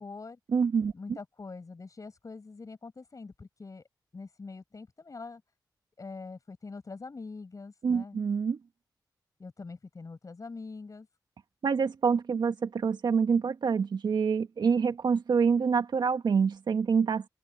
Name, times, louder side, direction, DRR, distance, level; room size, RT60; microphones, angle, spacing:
voice 1, 0.0-0.4 0.9-3.8 4.1-5.4 6.0-8.2 9.4-11.1, left 4 dB, 50° left, 7.7 m, -44 dB
voice 2, 0.5-0.9 7.8-8.6 11.6-17.3, right 6 dB, 75° right, 1.9 m, -26 dB
cardioid pair, 55°, 8 cm